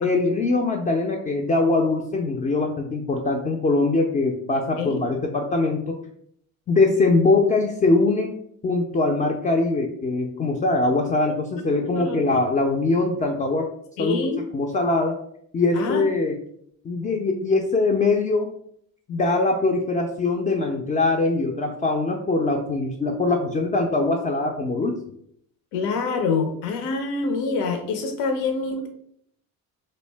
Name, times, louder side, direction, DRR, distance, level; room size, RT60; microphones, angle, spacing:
voice 1, 0.0-6.0 6.7-8.3 8.6-13.7 14.0-14.3 14.5-15.2 15.5-16.3 16.8-18.5 19.1-25.0, left 3 dB, 20° left, 1 dB, 0.3 m, -22 dB
voice 2, 11.9-12.4 14.0-14.4 15.7-16.0 25.7-28.9, left 4 dB, 75° left, 4 dB, 0.6 m, -26 dB
2.4 x 2.1 x 3.2 m, 0.68 s
hypercardioid pair, 55°, 42 cm